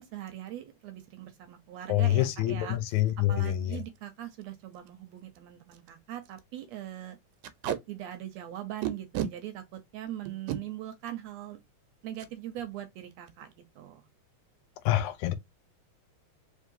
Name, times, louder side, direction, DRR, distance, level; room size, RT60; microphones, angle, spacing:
voice 1, 0.0-7.2 7.9-11.6 12.0-14.0, right 12 dB, 75° right, 1.7 m, -41 dB
voice 2, 1.9-3.8 14.9-15.3, left 14 dB, 80° left, 1.9 m, -26 dB
Packing tape duct tape, 3.8-4.0 4.4-4.5 4.7-4.9 5.4-5.5 5.7-5.9 6.2-6.4 7.4-7.8 8.8-9.3 10.3-10.6 12.1-12.3 12.7-12.9 13.1-13.5, right 10 dB, 90° right, 2.2 m, -33 dB
4.6 x 3.3 x 2.5 m
omnidirectional pair, 3.5 m